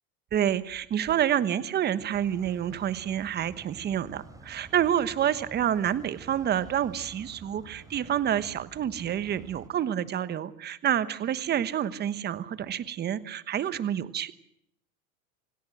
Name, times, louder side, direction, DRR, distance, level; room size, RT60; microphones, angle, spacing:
voice 1, 0.3-14.3, right 10 dB, 25° right, 15 dB, 1.2 m, -28 dB
sound 1, 2.1-9.7, right 3 dB, 10° right, 2.9 m, -50 dB
27.0 x 18.0 x 7.7 m, 0.76 s
supercardioid pair, 135°, 43 cm